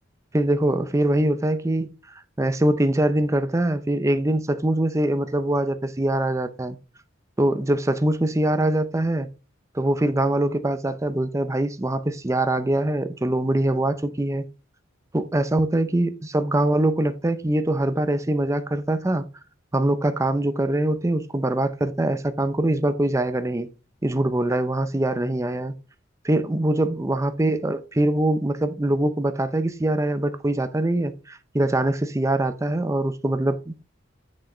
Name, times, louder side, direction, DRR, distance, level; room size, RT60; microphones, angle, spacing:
voice 1, 0.3-1.9 2.4-6.8 7.4-9.3 9.7-14.4 15.1-19.2 19.7-23.7 24.0-25.7 26.2-33.8, right 1 dB, 15° right, 0.6 m, -23 dB
8.2 x 6.3 x 3.2 m
head